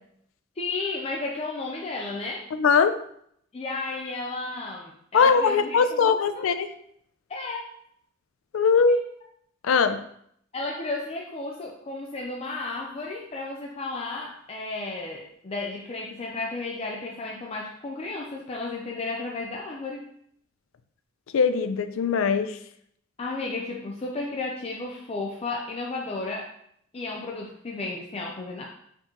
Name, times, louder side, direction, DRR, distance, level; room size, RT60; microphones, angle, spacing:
voice 1, 0.6-2.5 3.5-6.5 7.3-7.7 8.9-9.0 10.5-20.1 23.2-26.5 26.9-28.7, left 3 dB, 30° left, -1 dB, 0.4 m, -33 dB
voice 2, 2.5-3.0 5.1-6.7 8.5-9.0 9.6-10.0 21.3-22.6, left 5 dB, 90° left, 10 dB, 0.4 m, -21 dB
4.4 x 3.0 x 3.8 m, 0.68 s
head